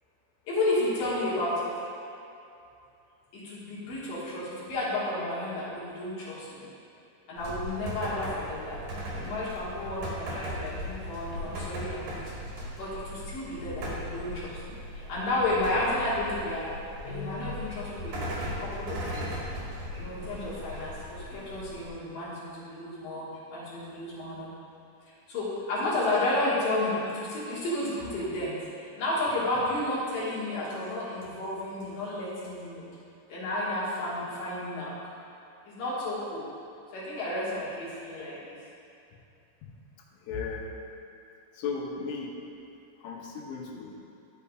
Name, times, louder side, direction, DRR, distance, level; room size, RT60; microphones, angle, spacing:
voice 1, 0.5-1.7 3.3-6.7 7.3-8.8 9.2-12.3 12.8-16.7 17.0-19.3 19.9-24.5 25.1-32.9 33.3-34.9 35.7-36.5 36.9-38.5, left 1 dB, 60° left, -9 dB, 2.5 m, -32 dB
sound 1, 7.4-21.9, equal, 65° right, 2.2 m, -38 dB
voice 2, 40.3-40.7 41.6-42.4 43.0-43.9, left 5 dB, 75° left, -1 dB, 3.0 m, -36 dB
11.0 x 6.9 x 2.4 m, 2.6 s
omnidirectional pair, 5.8 m